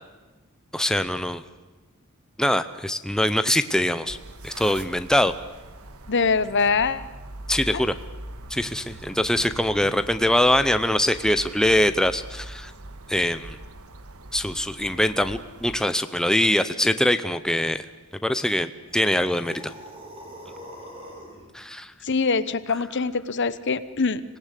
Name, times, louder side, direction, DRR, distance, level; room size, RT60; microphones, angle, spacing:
voice 1, 0.7-1.4 2.4-4.2 4.4-5.3 7.5-8.0 8.5-12.7 13.1-13.6 14.3-17.9 18.2-19.7 21.5-21.9, left 1 dB, 5° left, 10 dB, 0.7 m, -23 dB
sound 1, 4.1-15.8, right 1 dB, 85° right, 1.6 m, -42 dB
voice 2, 6.1-7.1 7.7-7.8 22.0-24.2, left 4 dB, 55° left, 15 dB, 0.9 m, -23 dB
sound 2, 18.8-21.5, equal, 25° right, 4.5 m, -43 dB
26.0 x 18.5 x 8.3 m, 1.2 s
head